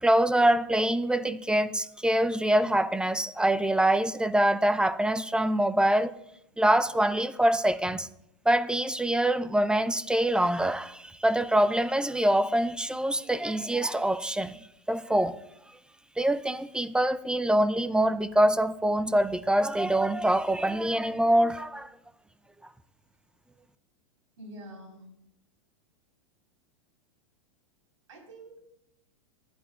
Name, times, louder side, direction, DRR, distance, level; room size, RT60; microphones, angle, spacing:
voice 1, 0.0-6.1 6.6-8.1 8.5-14.6 14.9-15.4 16.2-21.9, right 1 dB, 5° right, 0.5 m, -25 dB
voice 2, 24.4-25.1 28.1-28.6, right 1 dB, 80° right, 4.4 m, -46 dB
19.5 x 11.0 x 2.4 m
hypercardioid pair, 110°, 16 cm